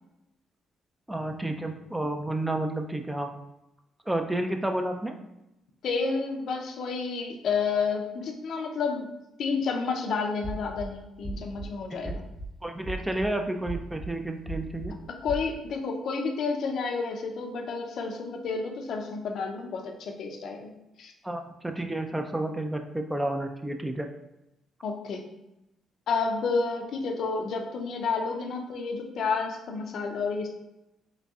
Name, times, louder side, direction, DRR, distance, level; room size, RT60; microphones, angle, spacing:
voice 1, 1.1-3.3 4.1-5.1 12.1-12.2 12.6-15.0 21.2-24.1, right 1 dB, 10° right, 5 dB, 0.3 m, -31 dB
voice 2, 5.8-9.1 9.4-12.2 15.2-20.7 21.0-21.1 24.8-25.2 26.1-30.5, left 4 dB, 65° left, 3 dB, 0.5 m, -30 dB
sound 1, 10.4-10.9 11.2-11.7 12.0-12.5 12.8-13.3 13.7-14.1 14.5-14.9 15.3-15.5, right 1 dB, 10° left, 0.7 m, -36 dB
3.9 x 3.2 x 2.3 m, 0.91 s
cardioid pair, 90°, 0 cm